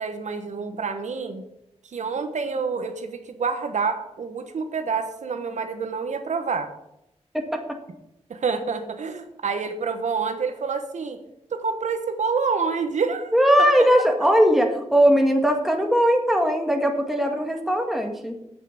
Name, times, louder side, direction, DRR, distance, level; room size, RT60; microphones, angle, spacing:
voice 1, 0.0-1.4 1.8-6.7 8.3-11.2 11.5-13.3 13.8-13.9, right 5 dB, 85° right, 7 dB, 1.2 m, -27 dB
voice 2, 13.3-18.4, equal, ahead, 3 dB, 1.9 m, -19 dB
8.5 x 6.8 x 8.3 m, 0.82 s
wide cardioid pair, 100°, 12 cm